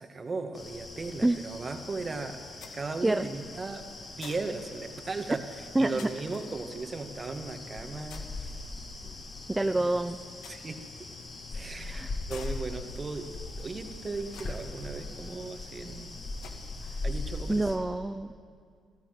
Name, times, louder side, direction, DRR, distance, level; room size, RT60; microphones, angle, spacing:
voice 1, 0.0-2.4 2.7-3.8 4.2-5.4 5.8-8.6 9.0-9.2 9.8-9.9 10.5-11.1 11.5-16.1 17.0-17.8, right 3 dB, 30° right, 5 dB, 2.0 m, -37 dB
sound 1, 0.5-17.8, left 2 dB, 45° left, 5.0 m, -41 dB
sound 2, 1.8-17.7, left 6 dB, 85° left, 1.8 m, -55 dB
voice 2, 5.7-6.1 9.5-10.2 11.8-12.1 16.8-17.0 17.5-18.4, right 2 dB, 15° right, 9 dB, 0.6 m, -27 dB
28.5 x 13.5 x 7.9 m, 2.2 s
cardioid pair, 90°, 0 cm